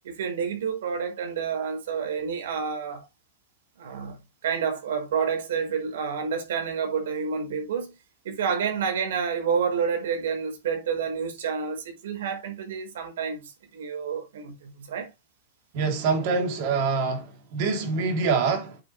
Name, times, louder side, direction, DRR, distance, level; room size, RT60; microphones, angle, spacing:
voice 1, 0.0-3.1 3.8-7.9 8.2-15.1, right 6 dB, 75° right, 4.8 m, -29 dB
voice 2, 15.7-18.8, right 4 dB, 45° right, 3.5 m, -25 dB
8.6 x 8.2 x 3.4 m
supercardioid pair, 155°, 0 cm